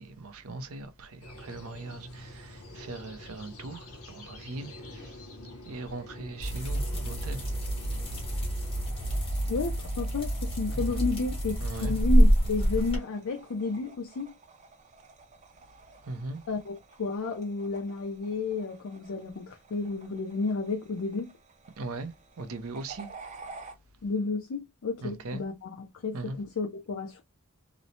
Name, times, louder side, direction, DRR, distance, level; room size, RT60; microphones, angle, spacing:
voice 1, 0.0-7.6 10.7-11.0 11.6-12.0 16.0-16.5 21.8-23.1 25.0-25.4 26.1-26.4, right 2 dB, 80° right, 0.6 m, -40 dB
sound 1, 1.2-9.3, left 1 dB, 85° left, 0.8 m, -46 dB
sound 2, 6.4-13.0, equal, 25° left, 1.1 m, -27 dB
sound 3, 7.3-23.7, right 3 dB, 35° right, 0.5 m, -52 dB
voice 2, 9.5-14.3 16.5-21.3 24.0-25.7 26.0-27.2, left 3 dB, 70° left, 0.5 m, -32 dB
3.0 x 2.0 x 2.6 m
head